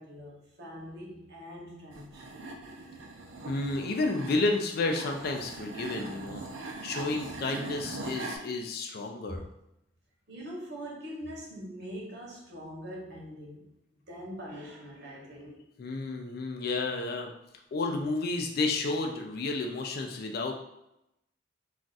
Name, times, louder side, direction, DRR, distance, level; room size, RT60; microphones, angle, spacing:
voice 1, 0.0-2.2 9.3-9.4 10.3-13.7 14.1-15.6, equal, 60° right, -2 dB, 0.9 m, -43 dB
sound 1, 1.9-8.4, right 2 dB, 85° right, 0.5 m, -41 dB
voice 2, 3.5-6.4 6.8-9.5 15.8-17.3 17.7-20.5, left 3 dB, 55° left, 3 dB, 0.4 m, -31 dB
2.4 x 2.3 x 3.9 m, 0.84 s
head